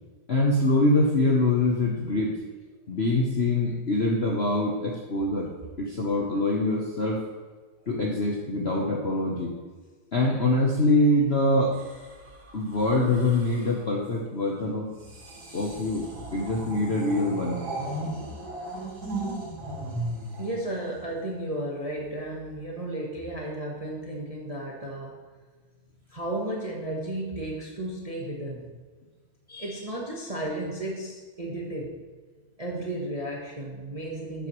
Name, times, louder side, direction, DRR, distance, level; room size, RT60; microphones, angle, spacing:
voice 1, 0.3-2.3 2.9-5.5 5.8-7.2 7.9-9.5 10.1-11.7 12.5-14.9 15.5-16.0 16.3-17.6, left 2 dB, 45° left, -2 dB, 0.8 m, -24 dB
sound 1, 11.7-13.8 14.9-21.3 22.2-22.5, right 1 dB, 50° right, 2.6 m, -37 dB
voice 2, 20.4-25.2 26.1-28.7 29.5-32.0 32.6-34.5, right 1 dB, 25° right, -2 dB, 0.8 m, -33 dB
12.0 x 7.8 x 3.1 m, 1.4 s
omnidirectional pair, 2.2 m